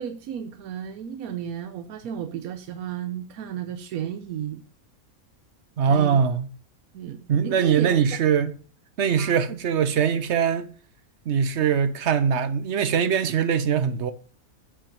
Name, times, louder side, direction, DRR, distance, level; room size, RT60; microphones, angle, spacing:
voice 1, 0.0-4.6 5.9-6.2 6.9-8.2 9.2-9.4, right 9 dB, 80° right, 1.2 m, -33 dB
voice 2, 5.8-6.5 7.3-8.5 9.0-10.7 11.3-14.1, right 7 dB, 60° right, 0.9 m, -22 dB
8.5 x 5.7 x 5.1 m
omnidirectional pair, 1.5 m